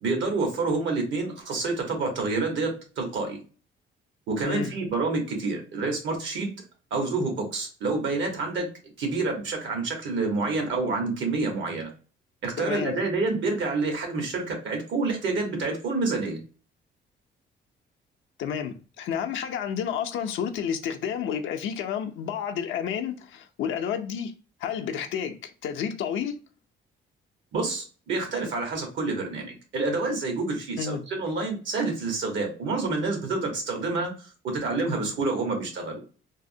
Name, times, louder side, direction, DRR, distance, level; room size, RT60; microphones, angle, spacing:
voice 1, 0.0-3.4 4.3-6.5 6.9-8.7 9.0-11.9 12.4-16.4 27.5-36.0, right 3 dB, 70° right, 1.1 m, -28 dB
voice 2, 12.6-12.9 18.4-24.3 24.6-26.3 30.8-31.0, left 8 dB, 80° left, 0.4 m, -30 dB
3.4 x 2.1 x 2.6 m
cardioid pair, 90°, 20 cm